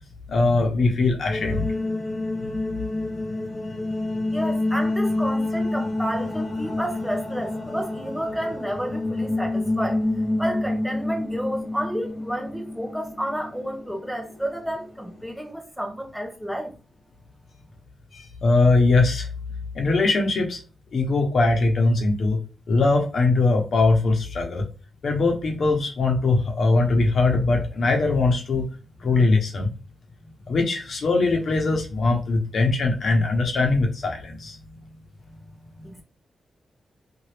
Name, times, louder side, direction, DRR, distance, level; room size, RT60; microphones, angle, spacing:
voice 1, 0.3-1.7 18.1-19.3 19.7-20.6 20.9-22.4 22.7-24.6 25.0-28.7 29.0-29.7 30.5-34.6, left 3 dB, 60° left, 0.9 m, -21 dB
sound 1, 1.3-15.4, left 2 dB, 25° left, 1.4 m, -28 dB
voice 2, 4.3-10.0 10.4-16.7 35.8-36.0, equal, ahead, 0.9 m, -30 dB
2.9 x 2.6 x 3.3 m
wide cardioid pair, 115°, 0 cm